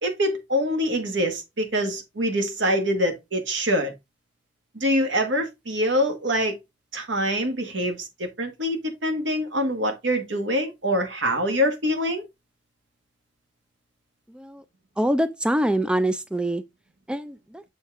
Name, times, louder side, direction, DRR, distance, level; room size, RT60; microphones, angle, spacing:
voice 1, 0.0-3.9 4.7-6.6 6.9-12.2, equal, 75° right, 1.7 m, -25 dB
voice 2, 15.0-16.6 17.1-17.3, right 1 dB, 5° right, 0.3 m, -24 dB
7.2 x 4.3 x 3.5 m
head